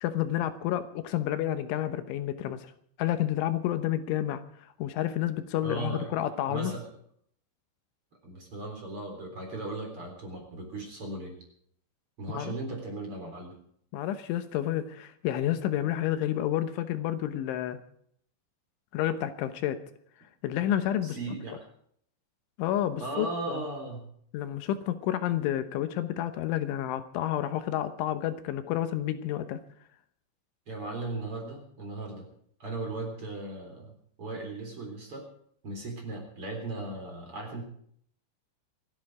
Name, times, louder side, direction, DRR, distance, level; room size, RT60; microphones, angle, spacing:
voice 1, 0.0-2.7 3.0-4.4 4.8-6.7 12.3-12.6 13.9-17.8 18.9-19.8 20.4-21.2 22.6-23.6 24.3-29.6, left 12 dB, 80° left, 10 dB, 3.4 m, -30 dB
voice 2, 5.6-6.1 6.5-6.9 8.2-11.4 12.2-13.6 21.0-21.6 23.0-24.1 30.7-32.3 32.6-33.9 34.2-35.3 35.6-37.6, right 2 dB, 30° right, 2 dB, 4.2 m, -37 dB
27.0 x 10.5 x 4.9 m, 0.65 s
omnidirectional pair, 5.5 m